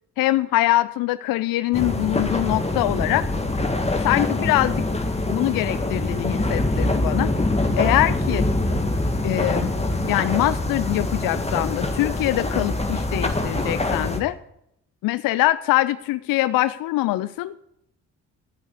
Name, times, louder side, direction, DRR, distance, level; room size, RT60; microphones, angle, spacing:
voice 1, 0.2-3.3 4.0-4.8 5.3-7.3 7.8-8.5 9.2-9.7 10.0-14.4 15.0-17.6, left 16 dB, 60° left, 16 dB, 0.5 m, -23 dB
sound 1, 1.7-14.2, left 2 dB, 15° left, 1.8 m, -24 dB
9.6 x 8.6 x 8.2 m, 0.79 s
hypercardioid pair, 50°, 39 cm